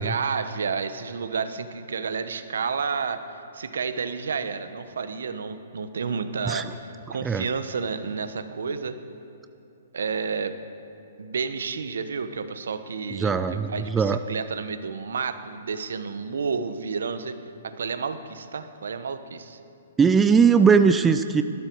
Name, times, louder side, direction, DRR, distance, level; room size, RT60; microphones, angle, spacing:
voice 1, 0.0-3.2 3.5-9.0 9.9-10.6 11.2-17.4 17.6-19.6, right 5 dB, 80° right, 10 dB, 1.1 m, -30 dB
voice 2, 13.2-14.2 20.0-21.4, right 6 dB, 10° right, 10 dB, 0.4 m, -19 dB
19.0 x 13.0 x 4.7 m, 2.8 s
hypercardioid pair, 150°, 0 cm